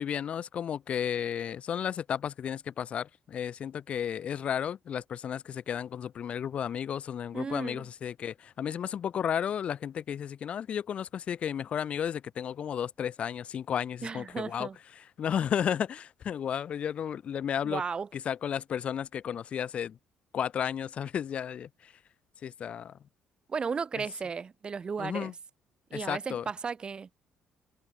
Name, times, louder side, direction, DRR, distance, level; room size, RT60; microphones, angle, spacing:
voice 1, 0.0-14.7 15.0-17.8 18.1-20.0 20.3-21.9 22.4-23.0 24.0-24.1 25.0-25.3 25.9-26.5, left 8 dB, 55° left, 3.9 m, -33 dB
voice 2, 7.3-7.8 14.0-14.8 17.6-18.1 23.5-25.3 25.9-27.1, right 5 dB, 40° right, 2.6 m, -35 dB
hypercardioid pair, 55°, 2 cm